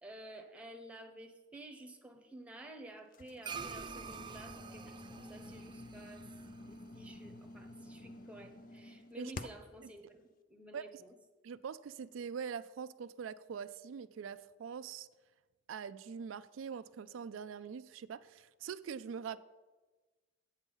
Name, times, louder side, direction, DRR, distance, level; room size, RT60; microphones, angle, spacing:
voice 1, 0.0-6.3 6.6-11.1, right 1 dB, 5° right, 4 dB, 0.9 m, -52 dB
sound 1, 3.1-9.8, left 2 dB, 45° left, 0.4 m, -50 dB
sound 2, 3.4-8.1, right 5 dB, 25° right, 0.5 m, -48 dB
voice 2, 11.4-15.1 15.7-19.4, right 7 dB, 85° right, 13 dB, 0.4 m, -43 dB
8.3 x 8.1 x 5.4 m, 1.2 s
head